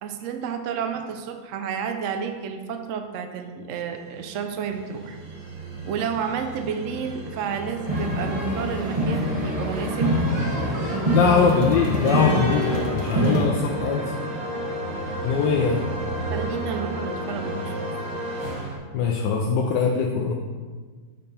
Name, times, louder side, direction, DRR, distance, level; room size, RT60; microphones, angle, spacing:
voice 1, 0.0-5.2 5.9-10.2 16.3-17.7, right 7 dB, 80° right, 6 dB, 0.7 m, -31 dB
sound 1, 4.0-18.8, right 1 dB, 50° right, 1.7 m, -33 dB
sound 2, 7.9-13.4, equal, 25° right, 1.0 m, -24 dB
voice 2, 11.1-14.1 15.2-15.8 18.9-20.3, left 5 dB, 75° left, 1 dB, 1.2 m, -22 dB
7.0 x 5.3 x 4.2 m, 1.5 s
omnidirectional pair, 2.0 m